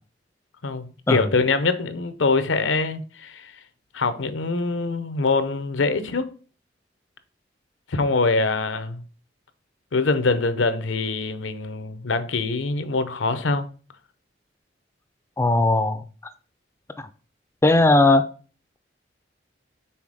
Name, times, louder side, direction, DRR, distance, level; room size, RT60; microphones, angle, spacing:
voice 1, 0.6-3.5 3.9-6.3 7.9-9.0 9.9-13.7, left 3 dB, 90° left, 0.7 m, -24 dB
voice 2, 15.4-16.0 17.0-17.1 17.6-18.2, left 2 dB, 15° left, 0.3 m, -18 dB
5.7 x 3.9 x 4.8 m
head